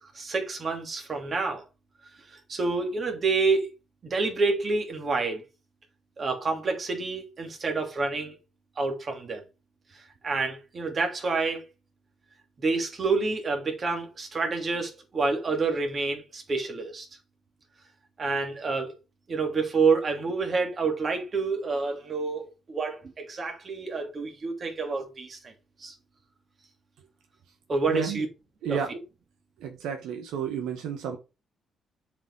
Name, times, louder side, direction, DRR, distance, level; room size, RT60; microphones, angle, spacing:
voice 1, 0.1-1.6 2.5-3.7 4.0-5.4 6.2-8.3 8.8-9.4 10.2-11.7 12.6-17.0 18.2-18.9 19.3-25.4 25.8-25.9 27.7-28.3 28.7-28.8, right 4 dB, 40° right, 2.8 m, -28 dB
voice 2, 27.9-28.2 28.6-29.0 29.6-31.2, right 7 dB, 90° right, 1.3 m, -31 dB
7.3 x 5.1 x 4.7 m
cardioid pair, 90°, 0 cm